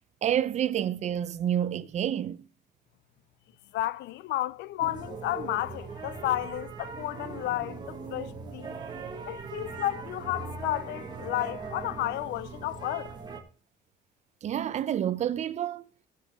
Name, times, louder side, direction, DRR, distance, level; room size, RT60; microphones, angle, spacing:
voice 1, 0.2-2.5 14.4-15.9, right 10 dB, 35° right, 0.6 m, -28 dB
voice 2, 3.7-8.8 9.3-13.1, left 15 dB, 65° left, 0.4 m, -32 dB
sound 1, 4.8-13.4, right 4 dB, 20° right, 1.6 m, -40 dB
19.0 x 7.2 x 3.6 m
cardioid pair, 170°, 19 cm